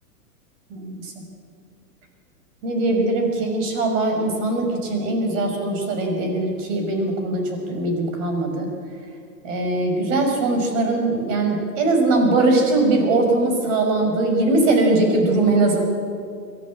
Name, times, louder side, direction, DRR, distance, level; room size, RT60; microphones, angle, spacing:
voice 1, 0.7-1.1 2.6-8.7 9.4-15.8, right 2 dB, 55° right, 3 dB, 6.0 m, -21 dB
22.5 x 15.0 x 8.7 m, 2.4 s
hypercardioid pair, 115°, 46 cm